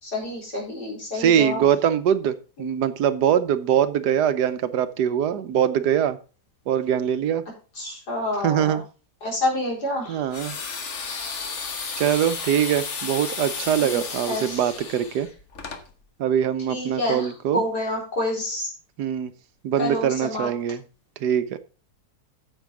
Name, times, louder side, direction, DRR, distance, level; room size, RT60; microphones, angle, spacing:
voice 1, 0.0-1.6 2.6-2.7 7.8-8.8 9.2-10.2 13.8-14.0 14.3-14.6 16.7-18.7 19.8-20.5, left 1 dB, 85° left, -2 dB, 4.7 m, -28 dB
voice 2, 1.1-6.2 6.7-7.4 8.4-8.8 10.1-10.6 12.0-15.3 16.2-17.6 19.0-19.3 19.6-20.8 21.2-21.6, right 9 dB, 85° right, 12 dB, 1.4 m, -23 dB
sound 1, 10.3-15.8, left 5 dB, 50° left, 1.5 m, -33 dB
9.1 x 7.4 x 4.7 m, 0.35 s
omnidirectional pair, 1.7 m